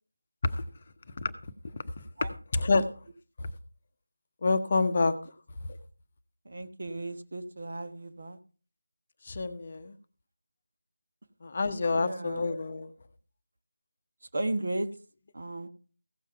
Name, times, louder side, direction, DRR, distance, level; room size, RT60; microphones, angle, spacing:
voice 1, 2.0-2.9 3.4-3.5 4.4-5.1 9.2-9.9 11.4-12.9, left 3 dB, 35° left, 9 dB, 0.9 m, -28 dB
voice 2, 6.4-8.4 11.9-12.5 14.3-14.9 15.3-15.7, right 2 dB, 45° right, 10 dB, 1.2 m, -35 dB
15.5 x 7.3 x 4.5 m, 0.40 s
figure-of-eight pair, 165°, 0 cm